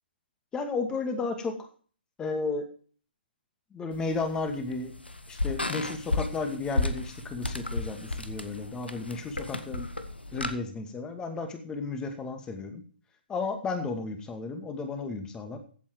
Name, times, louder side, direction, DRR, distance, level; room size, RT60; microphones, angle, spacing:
voice 1, 0.5-1.7 2.2-2.7 3.7-4.9 5.3-9.9 10.3-12.8 13.3-15.6, left 3 dB, 15° left, 8 dB, 2.2 m, -33 dB
sound 1, 3.9-10.5, left 2 dB, 80° left, 1.6 m, -33 dB
15.5 x 8.5 x 4.6 m, 0.42 s
figure-of-eight pair, 125°, 6 cm